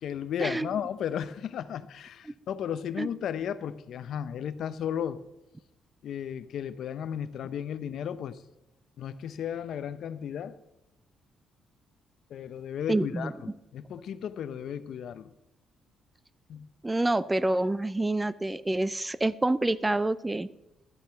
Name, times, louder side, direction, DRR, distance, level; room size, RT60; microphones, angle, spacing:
voice 1, 0.0-5.2 6.0-8.4 9.0-10.6 12.3-13.3 13.7-15.3 16.5-16.7, left 9 dB, 70° left, 14 dB, 0.7 m, -34 dB
voice 2, 12.9-13.3 16.8-20.5, right 2 dB, 15° right, 17 dB, 0.5 m, -27 dB
12.5 x 7.5 x 6.9 m, 0.92 s
cardioid pair, 90°, 0 cm